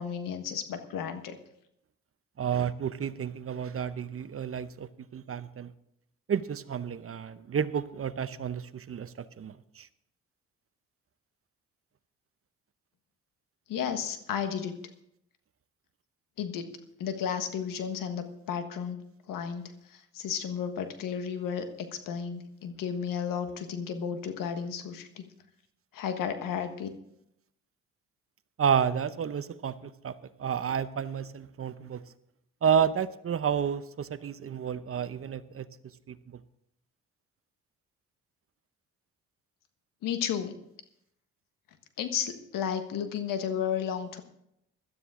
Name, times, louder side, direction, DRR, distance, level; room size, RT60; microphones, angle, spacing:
voice 1, 0.0-1.4 13.7-14.7 16.4-16.6 17.0-19.0 19.3-19.6 19.9-21.6 22.0-25.2 25.9-26.9 40.0-40.5 42.0-44.2, left 8 dB, 80° left, 8 dB, 1.5 m, -33 dB
voice 2, 2.4-5.7 6.3-9.9 28.6-32.0 32.6-35.7 36.1-36.4, right 7 dB, 45° right, 14 dB, 0.8 m, -31 dB
16.5 x 12.5 x 3.8 m, 0.77 s
supercardioid pair, 65°, 33 cm